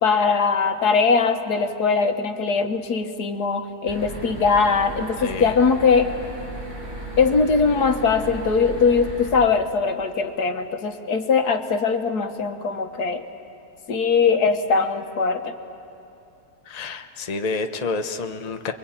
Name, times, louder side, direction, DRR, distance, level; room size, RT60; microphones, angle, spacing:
voice 1, 0.0-6.1 7.2-13.2 13.9-15.5, left 5 dB, 90° left, 6 dB, 1.9 m, -21 dB
sound 1, 3.9-9.3, equal, 70° right, 6.2 m, -35 dB
voice 2, 5.2-5.6 16.6-18.7, left 3 dB, 30° left, 6 dB, 1.0 m, -29 dB
28.0 x 22.0 x 8.9 m, 2.8 s
omnidirectional pair, 1.6 m